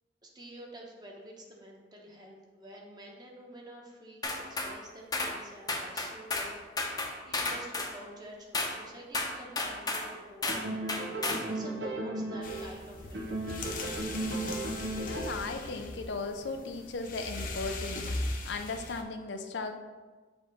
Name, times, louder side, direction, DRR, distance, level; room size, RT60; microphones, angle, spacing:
voice 1, 0.2-6.6 7.2-13.5, right 1 dB, 25° right, -1 dB, 1.0 m, -48 dB
sound 1, 4.2-4.7 5.1-5.3 5.7-6.5 6.8-7.9 8.5-8.7 9.1-10.1 10.4-10.6 10.9-11.4, left 2 dB, 20° left, 0.7 m, -32 dB
sound 2, 10.5-12.8 13.1-15.6, right 2 dB, 85° right, 0.8 m, -35 dB
sound 3, 12.4-19.0, left 2 dB, 50° left, 0.7 m, -39 dB
voice 2, 15.1-19.8, left 3 dB, 90° left, 6 dB, 0.6 m, -37 dB
7.0 x 2.9 x 5.3 m, 1.3 s
head